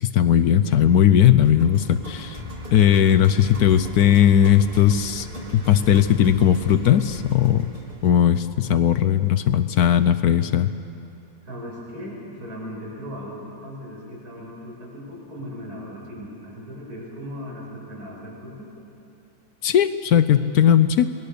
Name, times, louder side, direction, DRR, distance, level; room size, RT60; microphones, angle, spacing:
voice 1, 0.0-2.4 2.7-5.3 5.5-7.7 8.0-10.7 19.6-21.3, left 10 dB, 65° left, 11 dB, 1.0 m, -18 dB
sound 1, 1.4-9.6, equal, 25° right, 3.2 m, -38 dB
voice 2, 11.4-18.7, equal, 50° right, -4 dB, 6.4 m, -37 dB
28.0 x 20.5 x 6.8 m, 2.8 s
omnidirectional pair, 2.1 m